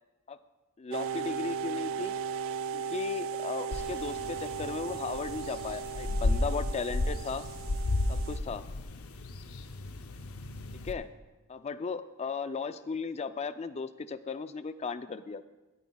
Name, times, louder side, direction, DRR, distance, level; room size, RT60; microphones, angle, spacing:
voice 1, 0.8-2.2 2.7-7.5 8.1-8.6 10.8-11.1 11.5-15.4, left 5 dB, 30° left, 12 dB, 0.3 m, -36 dB
sound 1, 0.9-8.4, right 6 dB, 65° right, 0.3 m, -37 dB
sound 2, 3.7-10.9, left 2 dB, 75° left, 0.6 m, -34 dB
17.5 x 9.2 x 2.3 m, 1.1 s
head